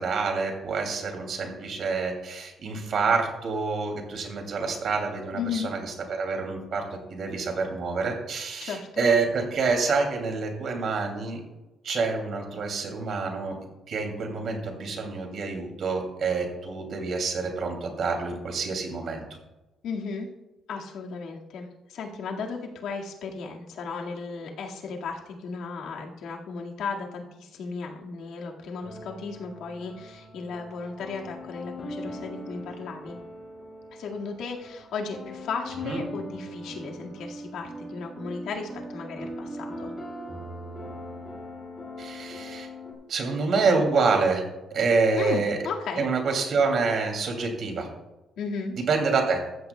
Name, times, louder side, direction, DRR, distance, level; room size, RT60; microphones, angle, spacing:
voice 1, 0.0-11.4 11.8-13.5 13.9-19.2 35.8-36.0 42.0-42.7 43.1-44.4 44.7-45.6 46.0-47.9 48.7-49.4, right 4 dB, 50° right, 2 dB, 2.6 m, -27 dB
voice 2, 5.3-5.7 8.6-9.1 19.8-20.3 20.7-33.2 33.9-39.9 45.2-46.0 48.4-48.8, left 5 dB, 75° left, 0 dB, 1.9 m, -35 dB
sound 1, 28.8-42.9, equal, 15° left, 3.7 m, -40 dB
14.5 x 14.0 x 2.3 m, 1.1 s
cardioid pair, 175°, 0 cm